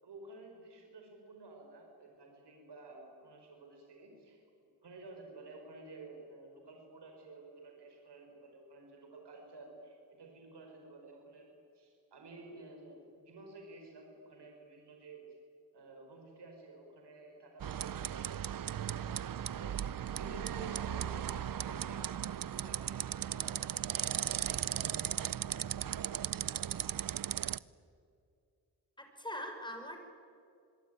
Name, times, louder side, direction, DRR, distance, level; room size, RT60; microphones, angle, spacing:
voice 1, 0.0-4.4 4.8-11.5 11.7-15.2 15.7-24.1 24.5-26.8, right 2 dB, 85° right, 2 dB, 4.9 m, -52 dB
sound 1, 17.6-27.6, right 10 dB, 55° right, 0.7 m, -37 dB
voice 2, 29.0-30.0, equal, 10° left, 4 dB, 5.6 m, -42 dB
26.5 x 22.0 x 9.3 m, 2.5 s
wide cardioid pair, 85°, 40 cm